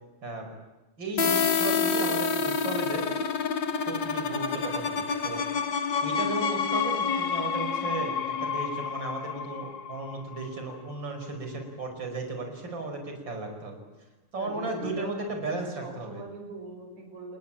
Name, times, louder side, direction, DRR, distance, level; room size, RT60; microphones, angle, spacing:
voice 1, 1.0-3.1 3.9-5.5 6.0-8.1 8.4-13.8 14.3-16.2, right 2 dB, 35° right, 5 dB, 5.9 m, -35 dB
sound 1, 1.2-10.8, left 5 dB, 45° left, 1.9 m, -28 dB
voice 2, 14.3-17.4, right 3 dB, 65° right, 3 dB, 7.4 m, -41 dB
29.0 x 20.0 x 9.0 m, 1.1 s
omnidirectional pair, 3.5 m